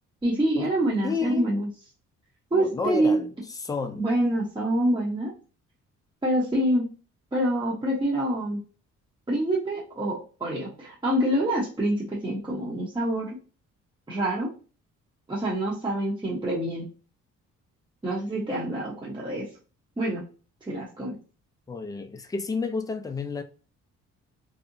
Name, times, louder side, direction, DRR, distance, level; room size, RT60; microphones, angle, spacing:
voice 1, 0.2-1.7 2.5-3.2 3.9-5.3 6.2-6.9 7.3-8.6 9.3-13.3 14.1-14.5 15.3-16.9 18.0-19.5 20.0-20.2 20.6-21.1, right 1 dB, 15° right, 0.8 m, -26 dB
voice 2, 1.0-1.5 2.5-3.3 3.6-4.0 21.7-23.4, left 4 dB, 10° left, 0.3 m, -31 dB
2.8 x 2.1 x 2.5 m
cardioid pair, 90°, 30 cm